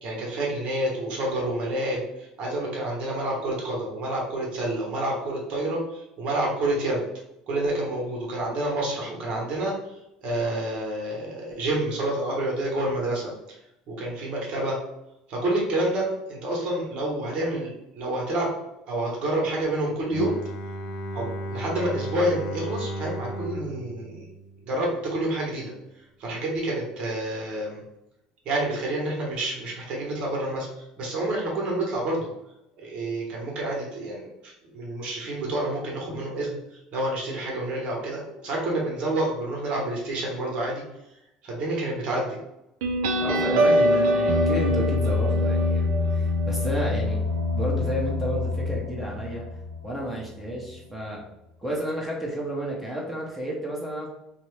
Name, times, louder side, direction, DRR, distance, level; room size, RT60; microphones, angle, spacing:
voice 1, 0.0-7.0 7.5-13.3 13.9-14.8 15.3-18.5 18.9-20.3 21.1-24.3 24.6-25.7 26.2-27.8 28.4-32.3 32.8-40.8 41.4-42.4, right 1 dB, 55° right, -2 dB, 1.0 m, -28 dB
Bowed string instrument, 20.1-25.0, right 1 dB, 55° left, 0.4 m, -34 dB
sound 1, 42.8-50.0, left 1 dB, 85° right, 0.4 m, -24 dB
voice 2, 43.2-47.2 47.5-49.4 49.8-51.3 51.6-54.1, right 1 dB, 10° right, -3 dB, 0.8 m, -31 dB
2.6 x 2.1 x 3.1 m, 0.85 s
supercardioid pair, 90°, 2 cm